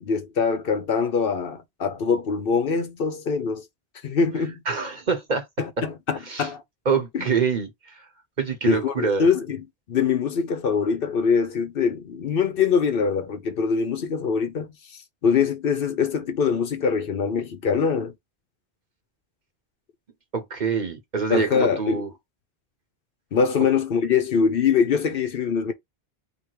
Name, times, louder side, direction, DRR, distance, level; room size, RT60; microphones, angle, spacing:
voice 1, 0.0-3.6 4.0-4.6 5.6-6.6 7.1-7.3 8.7-9.6 9.9-18.1 21.3-22.0 23.3-25.7, left 6 dB, 60° left, 0.9 m, -23 dB
voice 2, 4.7-5.5 6.3-6.5 6.8-8.1 8.4-9.2 20.3-22.1, right 6 dB, 45° right, 1.1 m, -25 dB
3.3 x 2.9 x 4.6 m
omnidirectional pair, 1.1 m